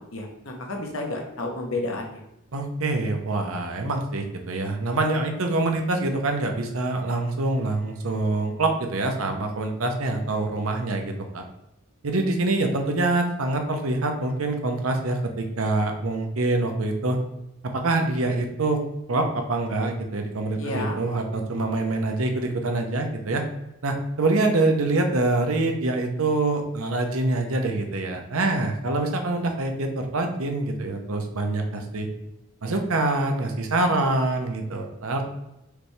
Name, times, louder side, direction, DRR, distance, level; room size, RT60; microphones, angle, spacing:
voice 1, 0.1-2.2 20.5-21.0, left 2 dB, 65° left, 1 dB, 1.0 m, -31 dB
voice 2, 2.5-11.4 12.0-17.2 17.7-18.8 19.1-23.4 23.8-32.1 32.6-35.2, right 2 dB, 75° right, 4 dB, 0.8 m, -25 dB
5.0 x 3.2 x 3.2 m, 0.88 s
head